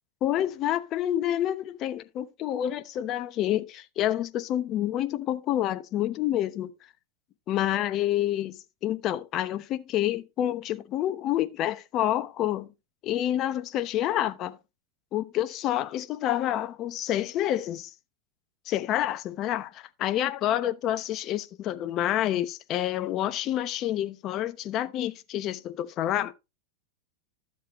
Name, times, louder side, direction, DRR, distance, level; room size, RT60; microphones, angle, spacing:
voice 1, 0.2-6.7 7.5-12.7 13.0-14.6 15.1-17.9 18.7-26.3, left 12 dB, 40° left, 1.0 m, -28 dB
13.0 x 7.4 x 3.1 m
hypercardioid pair, 125°, 0 cm